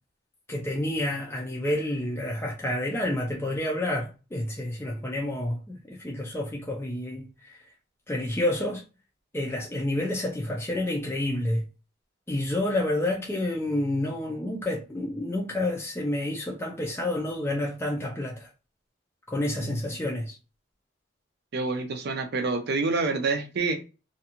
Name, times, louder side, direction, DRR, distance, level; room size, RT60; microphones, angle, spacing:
voice 1, 0.5-7.5 8.1-8.8 9.3-11.7 12.3-18.5 19.3-20.4, left 1 dB, 15° left, 0.4 m, -29 dB
voice 2, 21.5-23.8, right 3 dB, 55° right, 0.4 m, -27 dB
2.5 x 2.3 x 2.8 m
head